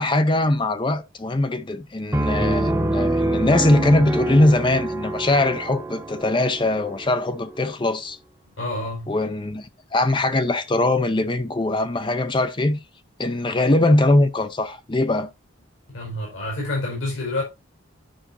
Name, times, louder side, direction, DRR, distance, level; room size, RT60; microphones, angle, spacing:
voice 1, 0.0-8.2 9.1-12.8 13.2-15.3, left 2 dB, 25° left, 0.5 m, -21 dB
Piano, 2.1-7.7, right 1 dB, 15° right, 0.7 m, -26 dB
voice 2, 8.6-9.2 15.9-17.4, left 2 dB, 85° left, 4.5 m, -28 dB
10.0 x 5.7 x 2.7 m
head